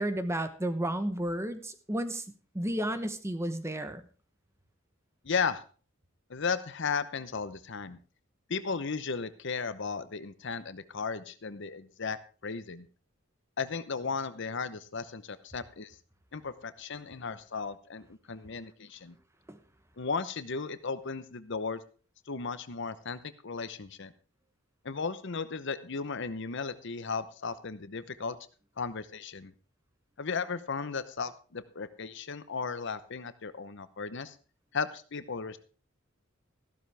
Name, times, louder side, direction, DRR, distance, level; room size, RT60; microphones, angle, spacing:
voice 1, 0.0-2.2 2.5-4.0 19.5-19.6, right 1 dB, 15° right, 10 dB, 1.0 m, -32 dB
voice 2, 5.2-5.6 6.3-8.0 8.5-12.2 12.4-12.9 13.6-16.0 16.3-19.1 20.0-21.8 22.3-24.1 24.8-28.4 28.8-29.5 30.2-34.4 34.7-35.6, left 5 dB, 60° left, 13 dB, 0.8 m, -35 dB
14.0 x 12.5 x 3.4 m, 0.37 s
head